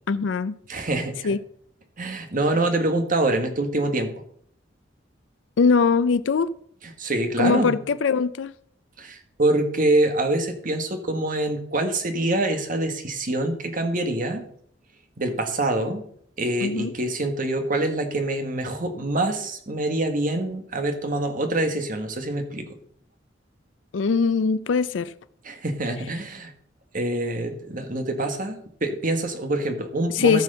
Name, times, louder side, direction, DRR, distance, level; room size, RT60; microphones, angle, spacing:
voice 1, 0.1-0.5 1.2-1.4 5.6-6.6 7.4-8.5 16.6-16.9 23.9-25.1 30.1-30.4, left 5 dB, 80° left, 0.5 m, -21 dB
voice 2, 0.7-1.3 2.0-4.1 7.0-7.8 9.0-14.4 15.2-16.0 16.4-22.7 25.4-26.5 26.9-30.4, right 2 dB, 45° right, 1.7 m, -25 dB
14.0 x 6.1 x 5.7 m
head